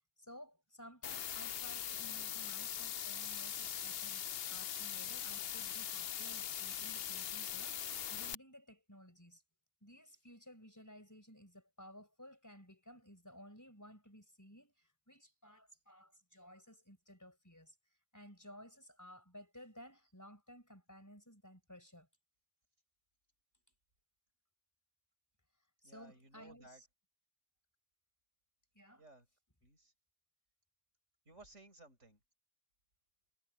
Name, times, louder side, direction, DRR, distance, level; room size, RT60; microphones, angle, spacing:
voice 1, 0.2-4.2 4.5-9.4 9.8-17.8 18.1-22.1 25.8-26.9 28.7-29.1, equal, 15° left, 4.5 m, -56 dB
sound 1, 1.0-8.3, left 9 dB, 60° left, 0.8 m, -41 dB
voice 2, 25.8-26.8 29.0-29.3 29.6-29.9 31.3-32.2, right 2 dB, 75° right, 6.7 m, -59 dB
omnidirectional pair, 1.3 m